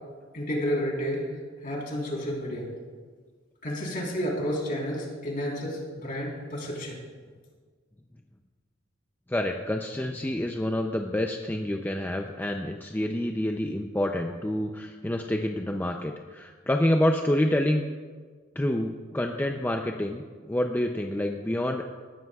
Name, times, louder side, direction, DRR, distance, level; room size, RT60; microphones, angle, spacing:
voice 1, 0.3-1.2 1.6-2.7 3.6-7.0, equal, 45° left, -3 dB, 3.8 m, -31 dB
voice 2, 9.3-17.8 18.6-21.8, left 1 dB, 10° left, 3 dB, 0.5 m, -28 dB
19.0 x 12.5 x 2.4 m, 1.5 s
head